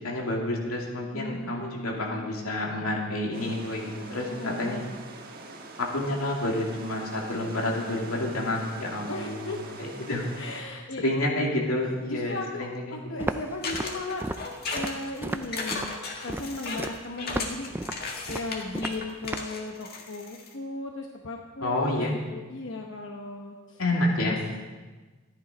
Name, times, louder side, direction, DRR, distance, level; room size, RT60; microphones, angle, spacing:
voice 1, 0.0-4.8 5.8-9.5 9.8-10.2 11.0-13.0 21.6-22.1 23.8-24.4, left 1 dB, 90° left, -1 dB, 2.6 m, -29 dB
voice 2, 1.1-2.4 4.3-5.0 9.1-9.6 10.4-11.0 11.8-14.3 14.7-16.0 16.2-17.7 18.3-23.8 24.1-24.6, left 2 dB, 60° left, 1 dB, 1.0 m, -37 dB
sound 1, 3.3-10.6, right 3 dB, 45° right, 1.3 m, -44 dB
Walk footsteps, 13.2-19.6, right 1 dB, 10° right, 0.4 m, -35 dB
sound 2, 13.6-20.5, left 3 dB, 45° left, 1.7 m, -35 dB
13.5 x 10.5 x 5.1 m, 1.3 s
head